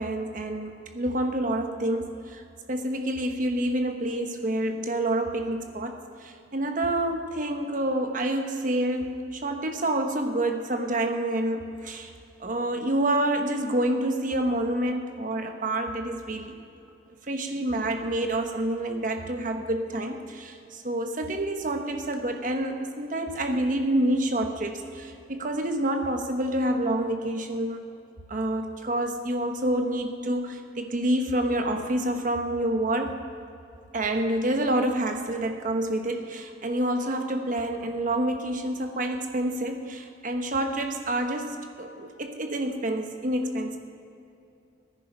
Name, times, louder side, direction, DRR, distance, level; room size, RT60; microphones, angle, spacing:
voice 1, 0.0-2.4 2.7-12.1 12.4-16.5 17.3-27.8 28.3-33.2 33.9-43.8, right 1 dB, 45° right, 5 dB, 1.1 m, -28 dB
15.0 x 9.9 x 5.5 m, 2.6 s
head